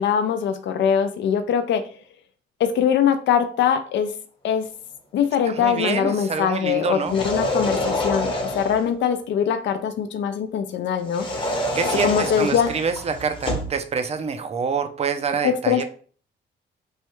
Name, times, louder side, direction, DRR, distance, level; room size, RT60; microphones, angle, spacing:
voice 1, 0.0-1.8 2.6-4.1 4.4-4.7 5.1-11.3 12.0-12.7 15.4-15.8, left 8 dB, 65° left, 9 dB, 0.5 m, -22 dB
voice 2, 5.5-7.2 11.8-15.8, right 5 dB, 30° right, 8 dB, 0.4 m, -26 dB
sound 1, 7.0-8.9 11.1-13.8, left 1 dB, 25° left, 0.9 m, -26 dB
3.2 x 2.3 x 3.0 m, 0.43 s
cardioid pair, 90°, 20 cm